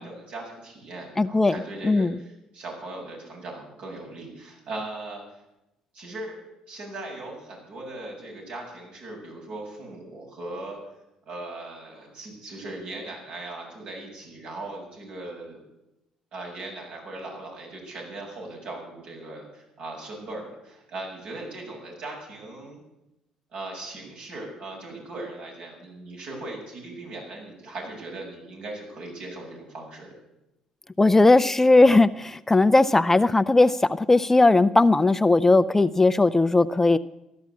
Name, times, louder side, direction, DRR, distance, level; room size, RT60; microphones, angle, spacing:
voice 1, 0.0-5.2 5.9-6.4 6.7-10.8 11.3-15.6 16.3-22.8 23.5-30.1, right 2 dB, 70° right, -1 dB, 7.4 m, -39 dB
voice 2, 1.2-2.2 31.0-37.0, left 2 dB, 15° left, 13 dB, 0.5 m, -18 dB
14.5 x 11.5 x 8.5 m, 0.91 s
supercardioid pair, 70°, 2 cm